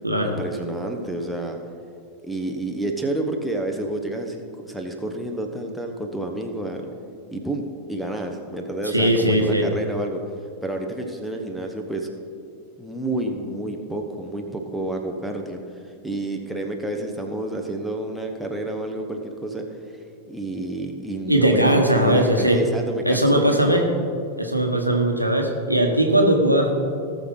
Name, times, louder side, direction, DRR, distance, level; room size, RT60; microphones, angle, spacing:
voice 1, 0.2-1.6 2.2-6.8 7.3-7.6 7.9-10.2 10.6-12.1 12.8-23.9, right 1 dB, ahead, 1 dB, 1.1 m, -29 dB
voice 2, 8.9-9.7 21.3-22.6 23.0-23.8 24.4-26.7, right 1 dB, 90° right, 2 dB, 1.2 m, -19 dB
18.5 x 6.4 x 3.9 m, 2.4 s
figure-of-eight pair, 90°, 0 cm